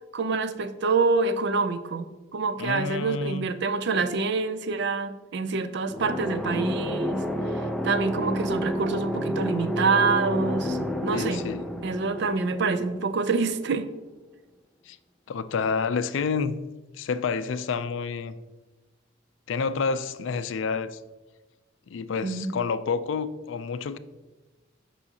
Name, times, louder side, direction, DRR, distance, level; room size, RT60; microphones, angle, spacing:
voice 1, 0.1-7.2 7.5-11.4 11.8-13.9 22.2-22.6, right 4 dB, 55° right, 0.4 m, -26 dB
voice 2, 2.6-3.5 11.1-11.6 14.9-15.0 15.3-16.6 16.9-18.4 19.5-21.0 21.9-24.0, left 5 dB, 70° left, 0.4 m, -29 dB
sound 1, 5.9-13.5, equal, ahead, 0.4 m, -30 dB
8.3 x 5.6 x 2.8 m
head